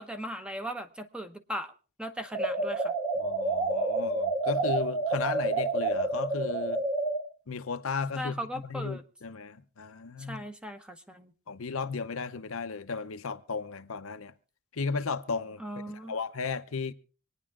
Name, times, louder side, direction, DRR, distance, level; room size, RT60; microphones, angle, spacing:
voice 1, 0.0-1.7 2.0-2.9 8.2-9.0 10.3-11.3 15.6-16.1, equal, 5° right, 0.9 m, -38 dB
sound 1, 2.3-7.2, right 2 dB, 45° right, 2.5 m, -29 dB
voice 2, 3.2-6.8 7.5-10.4 11.5-14.3 14.7-15.6 15.9-16.9, left 5 dB, 70° left, 0.7 m, -35 dB
26.0 x 9.8 x 3.6 m
head